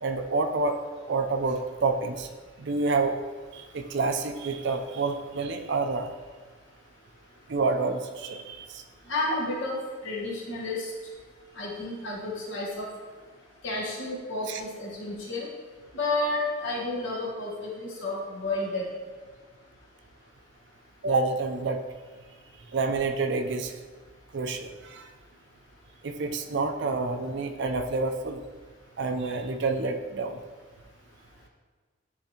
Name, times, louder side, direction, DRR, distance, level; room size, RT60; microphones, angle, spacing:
voice 1, 0.0-0.8 1.1-2.3 2.6-3.2 3.5-6.1 7.5-8.8 14.5-14.6 21.0-21.8 22.7-23.7 24.3-25.1 26.0-28.4 29.0-30.4, right 3 dB, 60° right, 6 dB, 0.5 m, -28 dB
voice 2, 9.1-9.8 10.0-10.9 11.6-12.9 13.6-15.5 15.9-18.8, left 2 dB, 70° left, -3 dB, 1.4 m, -31 dB
9.9 x 3.5 x 2.9 m, 1.5 s
head